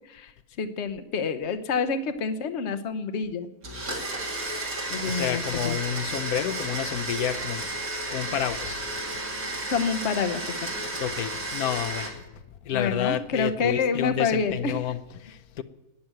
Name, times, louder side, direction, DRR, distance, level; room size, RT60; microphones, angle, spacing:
voice 1, 0.6-3.5 4.9-5.8 9.7-10.5 12.7-14.8, left 5 dB, 55° left, 1.1 m, -28 dB
Domestic sounds home sounds, 3.6-12.1, right 2 dB, 75° right, 3.2 m, -32 dB
voice 2, 5.0-7.7 8.1-8.8 11.0-15.6, left 9 dB, 90° left, 1.2 m, -30 dB
12.5 x 9.5 x 9.0 m
omnidirectional pair, 1.5 m